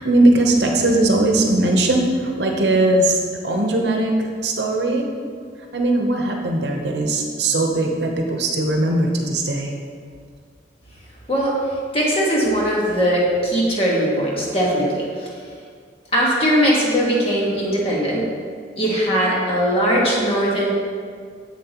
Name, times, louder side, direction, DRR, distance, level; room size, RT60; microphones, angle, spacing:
voice 1, 0.0-5.1 5.7-9.7, right 2 dB, 70° right, 2 dB, 0.8 m, -19 dB
voice 2, 11.9-15.3 16.1-18.2 18.8-20.7, equal, 30° left, -4 dB, 1.5 m, -20 dB
7.4 x 7.4 x 3.0 m, 2.1 s
head